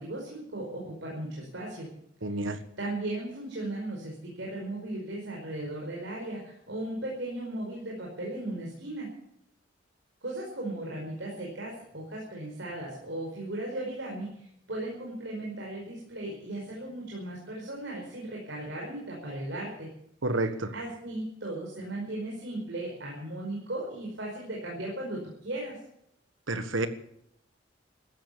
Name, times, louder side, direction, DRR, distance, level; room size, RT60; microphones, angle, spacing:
voice 1, 0.0-1.9 2.3-9.1 10.2-19.9 20.7-25.8, right 1 dB, 70° right, -2 dB, 5.1 m, -37 dB
voice 2, 2.2-2.6 20.2-20.7 26.5-26.9, right 2 dB, 90° right, 10 dB, 1.6 m, -29 dB
16.0 x 13.0 x 6.9 m, 0.75 s
head